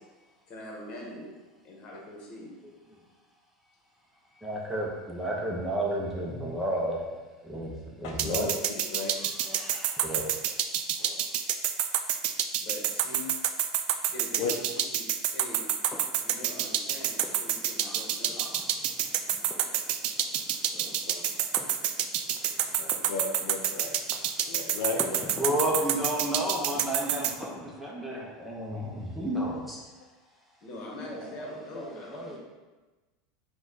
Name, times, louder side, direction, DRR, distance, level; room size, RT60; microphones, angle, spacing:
voice 1, 0.5-1.4 1.6-2.5 12.6-13.2 14.1-15.7 16.2-18.4 20.7-21.0 22.4-22.5 30.6-32.4, left 2 dB, 45° left, -1 dB, 1.2 m, -43 dB
voice 2, 4.4-7.1 7.4-8.5 9.4-10.4 11.0-11.1 25.4-29.8 31.0-32.4, right 1 dB, 5° right, -3 dB, 0.9 m, -32 dB
voice 3, 8.0-8.5 8.9-9.1 11.0-11.2 14.4-14.5 21.1-21.2 22.8-23.9 24.5-25.5, left 4 dB, 70° left, 1 dB, 0.5 m, -34 dB
sound 1, 8.2-27.3, right 10 dB, 50° right, 0.3 m, -28 dB
sound 2, 15.9-28.0, left 2 dB, 15° left, 0.5 m, -47 dB
4.8 x 2.4 x 4.0 m, 1.2 s
supercardioid pair, 120°, 2 cm